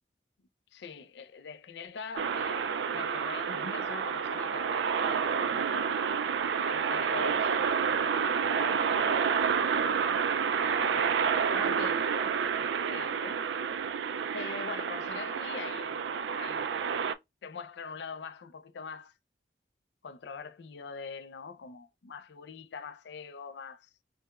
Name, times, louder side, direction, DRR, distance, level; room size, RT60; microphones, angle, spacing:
voice 1, 0.7-6.1 6.7-9.7 10.6-13.4 14.3-16.1 16.3-16.7 17.4-19.1 20.0-24.0, left 5 dB, 70° left, 0.4 m, -43 dB
sound 1, 2.2-17.1, right 6 dB, 75° right, 0.3 m, -29 dB
4.8 x 2.1 x 2.3 m
head